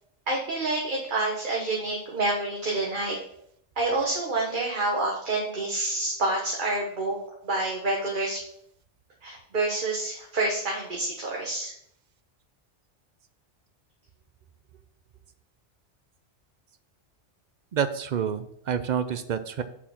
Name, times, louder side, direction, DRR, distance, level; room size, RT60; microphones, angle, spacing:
voice 1, 0.3-3.2 3.8-7.2 7.4-8.4 9.2-11.7, right 2 dB, 45° right, -2 dB, 1.3 m, -28 dB
voice 2, 17.7-19.6, right 8 dB, 60° right, 11 dB, 0.4 m, -28 dB
7.2 x 4.6 x 5.7 m, 0.71 s
omnidirectional pair, 1.2 m